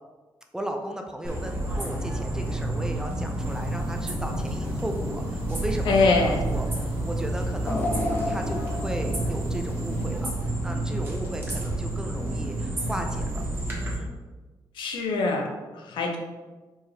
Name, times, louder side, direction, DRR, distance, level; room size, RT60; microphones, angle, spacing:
voice 1, 0.5-5.9 6.2-8.0 8.3-10.3 10.6-13.4 13.9-14.2, right 1 dB, 10° right, 4 dB, 0.4 m, -35 dB
sound 1, 1.2-13.9, right 1 dB, 25° right, 1.0 m, -29 dB
sound 2, 3.4-10.3, right 1 dB, 80° right, 1.2 m, -45 dB
voice 2, 5.8-6.5 14.7-16.2, left 3 dB, 85° left, 1 dB, 0.7 m, -24 dB
sound 3, 7.6-10.8 11.2-11.4 12.4-12.5, left 2 dB, 30° left, 0.7 m, -32 dB
4.5 x 2.9 x 3.2 m, 1.3 s
wide cardioid pair, 140°, 8 cm